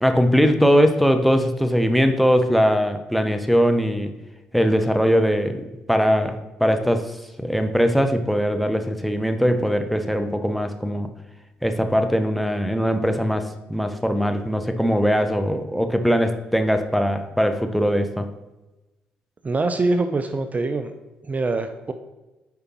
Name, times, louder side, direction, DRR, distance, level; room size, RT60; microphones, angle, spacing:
voice 1, 0.0-4.1 4.5-7.1 7.4-11.1 11.6-18.3, equal, ahead, 7 dB, 0.8 m, -21 dB
voice 2, 19.4-20.9 21.2-21.9, right 3 dB, 35° right, 8 dB, 0.5 m, -24 dB
8.1 x 5.0 x 3.0 m, 1.0 s
hypercardioid pair, 50°, 5 cm